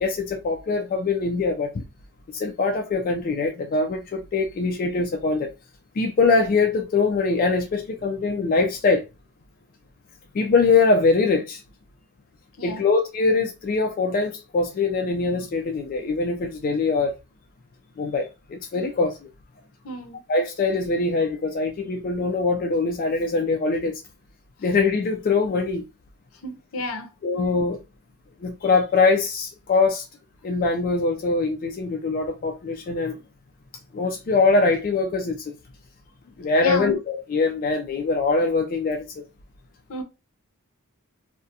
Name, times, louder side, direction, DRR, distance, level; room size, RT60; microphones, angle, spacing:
voice 1, 0.0-1.8 2.3-5.5 6.0-9.1 10.3-11.6 12.6-17.1 18.0-19.2 20.3-24.0 24.6-25.8 27.2-27.8 28.4-30.0 30.4-33.2 33.9-35.5 36.4-39.0, left 3 dB, 40° left, 0.3 m, -23 dB
voice 2, 19.8-20.2 26.4-27.1 36.6-37.0 39.9-40.0, left 1 dB, 75° left, 0.6 m, -32 dB
2.4 x 2.1 x 2.6 m
head